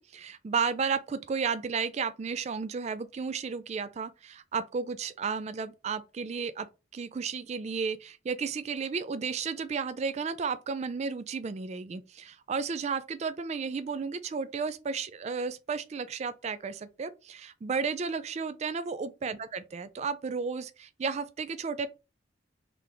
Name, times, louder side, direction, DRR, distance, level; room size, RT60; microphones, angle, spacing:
voice 1, 0.0-6.7 6.9-21.9, right 5 dB, 35° right, 0.3 m, -33 dB
3.8 x 3.3 x 3.0 m
head